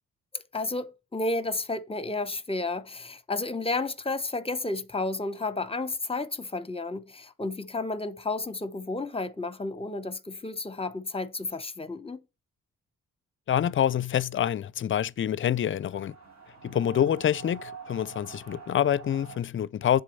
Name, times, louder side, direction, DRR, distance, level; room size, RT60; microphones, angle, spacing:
voice 1, 0.3-12.2, left 2 dB, 20° left, 0.8 m, -32 dB
voice 2, 13.5-16.1 16.6-20.0, left 10 dB, 40° left, 0.4 m, -26 dB
sound 1, 15.8-19.4, right 6 dB, 60° right, 1.8 m, -45 dB
7.4 x 3.8 x 5.3 m
supercardioid pair, 60°, 31 cm